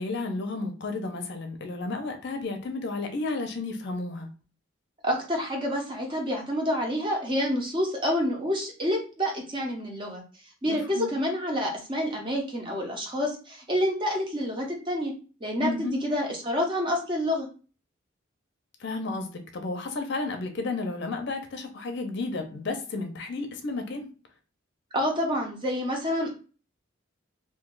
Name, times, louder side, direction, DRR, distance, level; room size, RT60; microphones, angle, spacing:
voice 1, 0.0-4.3 10.6-11.1 15.6-15.9 18.8-24.1, left 3 dB, 55° left, 6 dB, 0.5 m, -32 dB
voice 2, 5.0-10.2 10.6-15.1 15.4-17.5 24.9-26.3, equal, 25° right, 0 dB, 0.7 m, -28 dB
2.6 x 2.3 x 3.7 m, 0.35 s
head